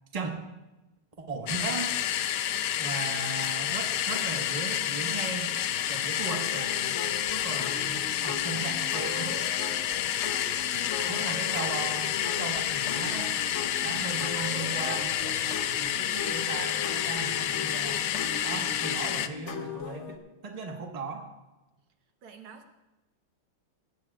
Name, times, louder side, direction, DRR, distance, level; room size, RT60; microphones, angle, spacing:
voice 1, 1.3-1.9 2.8-5.5 5.9-6.9 7.3-8.0 8.2-9.4 11.1-13.3 13.8-18.0 18.4-21.3, right 4 dB, 20° right, 2 dB, 1.3 m, -37 dB
sound 1, 1.5-19.3, left 11 dB, 75° left, 0.9 m, -29 dB
sound 2, 6.3-20.2, left 5 dB, 50° left, 0.9 m, -39 dB
voice 2, 10.7-11.5 22.2-22.7, right 5 dB, 75° right, 5 dB, 2.0 m, -48 dB
18.5 x 16.5 x 2.4 m, 1.0 s
omnidirectional pair, 2.3 m